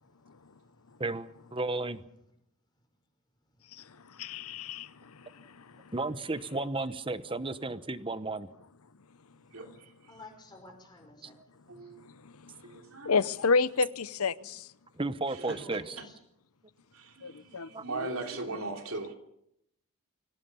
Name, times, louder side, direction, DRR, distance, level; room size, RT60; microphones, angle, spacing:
voice 1, 0.0-0.9 3.5-5.9 9.3-9.6 10.1-12.0 12.6-13.0 15.6-16.2, left 2 dB, 20° left, 5.5 m, -57 dB
voice 2, 1.0-2.0 5.9-8.5 15.0-16.0 17.7-17.8, right 2 dB, 25° right, 1.0 m, -33 dB
voice 3, 4.2-4.9 5.4-5.5 5.7-5.8 12.2-12.5 13.0-14.7 17.2-17.7 18.0-18.1, left 4 dB, 75° left, 0.8 m, -29 dB
voice 4, 9.5-9.9 11.7-12.0 12.6-13.2 15.3-16.0 16.9-19.1, right 3 dB, 70° right, 3.3 m, -39 dB
24.0 x 17.5 x 6.9 m
head